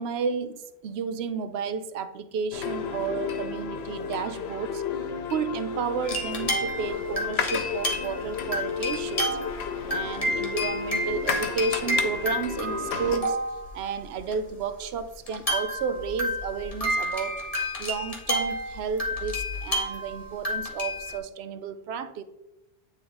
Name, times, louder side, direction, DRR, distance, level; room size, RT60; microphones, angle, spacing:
voice 1, 0.0-4.8 5.3-9.3 9.9-13.4 13.7-17.4 17.8-22.2, right 6 dB, 90° right, 11 dB, 0.8 m, -32 dB
sound 1, 2.5-13.2, left 6 dB, 85° left, 0.9 m, -32 dB
sound 2, 6.0-8.2 8.5-9.6 9.9-13.7 14.3-14.4 15.3-21.2, equal, 35° left, 1.2 m, -30 dB
9.4 x 3.2 x 3.8 m, 0.89 s
omnidirectional pair, 1.0 m